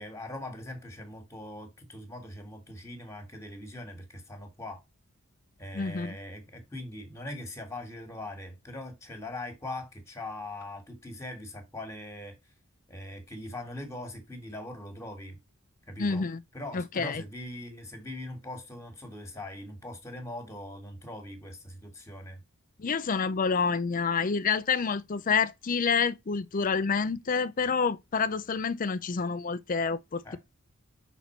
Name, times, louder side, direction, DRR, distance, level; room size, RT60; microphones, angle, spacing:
voice 1, 0.0-4.8 5.6-12.3 12.9-15.4 15.9-16.3 16.5-22.4 30.2-30.4, left 1 dB, 15° left, 1.6 m, -41 dB
voice 2, 5.7-6.1 16.0-16.4 16.7-17.2 22.8-30.4, left 5 dB, 40° left, 0.5 m, -28 dB
5.9 x 4.1 x 4.3 m
head